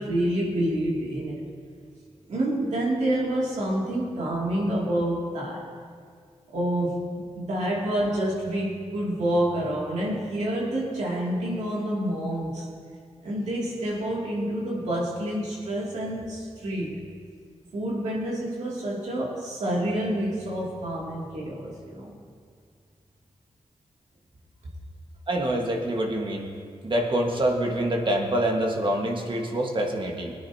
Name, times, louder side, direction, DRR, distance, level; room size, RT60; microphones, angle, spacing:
voice 1, 0.0-1.5 2.3-5.7 6.5-12.7 13.2-17.0 17.7-22.1, right 1 dB, 90° right, -4 dB, 2.7 m, -28 dB
voice 2, 25.3-26.5 26.8-30.3, right 1 dB, 45° right, 1 dB, 1.7 m, -26 dB
20.5 x 9.5 x 2.9 m, 2.1 s
cardioid pair, 70°, 12 cm